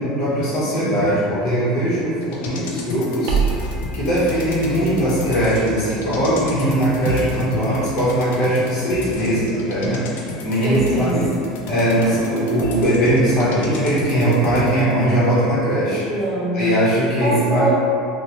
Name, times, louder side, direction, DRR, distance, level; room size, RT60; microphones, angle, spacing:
voice 1, 0.0-3.4 3.9-10.0 10.4-11.3 11.7-16.1 16.5-17.7, right 1 dB, 45° left, -9 dB, 0.9 m, -20 dB
sound 1, 2.2-15.0 15.4-15.5, left 2 dB, 90° left, 0.4 m, -33 dB
sound 2, 3.3-8.1, right 5 dB, 60° right, 0.4 m, -29 dB
voice 2, 8.8-9.4 10.6-11.3 16.0-16.6 17.2-17.8, right 2 dB, 20° right, -11 dB, 1.0 m, -24 dB
3.0 x 2.1 x 2.9 m, 2.5 s
supercardioid pair, 150°, 0 cm